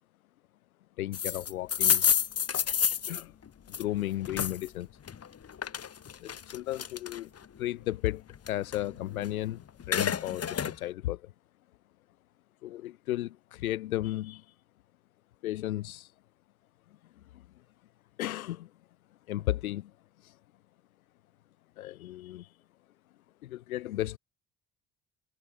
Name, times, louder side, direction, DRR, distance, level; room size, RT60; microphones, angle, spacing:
voice 1, 1.0-2.1 3.1-3.4 3.7-4.9 6.2-7.3 7.6-11.3 12.6-14.5 15.4-16.1 17.3-17.5 18.2-18.7 19.3-19.9 20.2-20.4 21.8-22.5 23.4-24.2, left 15 dB, 75° left, 4.9 m, -34 dB
sound 1, 1.1-4.7 5.1-7.4 7.9-9.4 9.7-10.8, left 8 dB, 35° left, 2.7 m, -29 dB
figure-of-eight pair, 50°, 43 cm